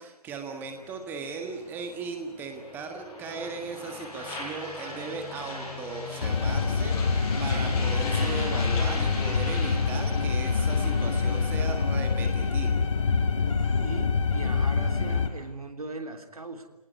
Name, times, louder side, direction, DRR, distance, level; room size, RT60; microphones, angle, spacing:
voice 1, 0.0-12.8, right 5 dB, 10° right, 5 dB, 1.6 m, -37 dB
sound 1, 0.6-15.4, left 3 dB, 20° left, 5.5 m, -40 dB
sound 2, 6.2-15.3, left 5 dB, 55° left, 2.0 m, -26 dB
voice 2, 13.8-16.7, right 2 dB, 70° right, 5 dB, 3.4 m, -39 dB
29.0 x 19.0 x 9.6 m, 1.0 s
figure-of-eight pair, 140°, 20 cm